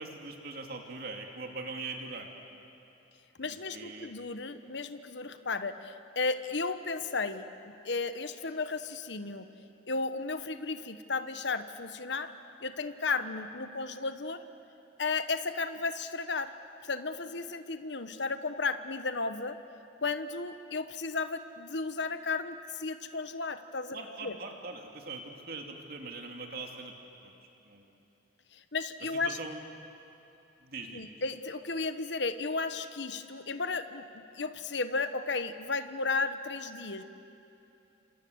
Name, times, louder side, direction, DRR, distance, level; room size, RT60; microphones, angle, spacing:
voice 1, 0.0-2.3 3.4-4.1 23.9-26.9 27.2-27.3 27.6-28.0 29.1-29.6 30.6-31.2, right 3 dB, 55° right, 2 dB, 2.6 m, -42 dB
voice 2, 3.4-9.5 9.9-12.3 12.6-14.4 15.0-16.5 16.8-19.6 20.0-24.4 28.5-29.4 30.9-37.0, left 4 dB, 65° left, 10 dB, 1.1 m, -34 dB
27.5 x 27.0 x 8.0 m, 2.9 s
head